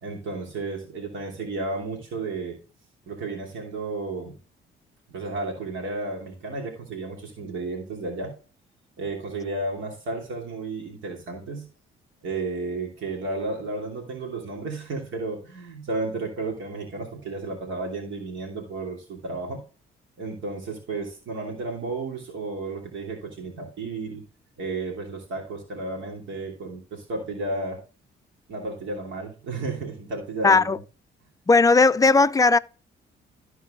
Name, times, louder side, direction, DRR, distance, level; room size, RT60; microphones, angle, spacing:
voice 1, 0.0-2.6 3.1-4.3 5.1-8.3 9.0-11.7 12.2-19.6 20.2-24.2 24.6-27.8 28.5-30.8, right 3 dB, 75° right, 2.9 m, -33 dB
voice 2, 30.4-30.8 31.5-32.6, left 3 dB, 15° left, 0.4 m, -17 dB
13.5 x 4.6 x 3.8 m
cardioid pair, 90°, 20 cm